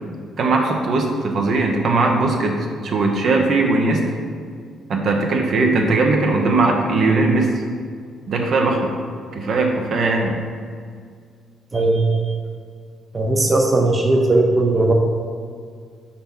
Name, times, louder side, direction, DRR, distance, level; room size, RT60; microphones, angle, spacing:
voice 1, 0.4-2.6 2.8-4.0 4.9-7.6 8.3-8.9 9.3-10.4, right 3 dB, 60° right, 1 dB, 0.8 m, -19 dB
voice 2, 11.7-12.2 13.1-14.9, right 2 dB, 25° right, 1 dB, 0.7 m, -17 dB
4.4 x 4.3 x 5.3 m, 2.1 s
cardioid pair, 75°, 0 cm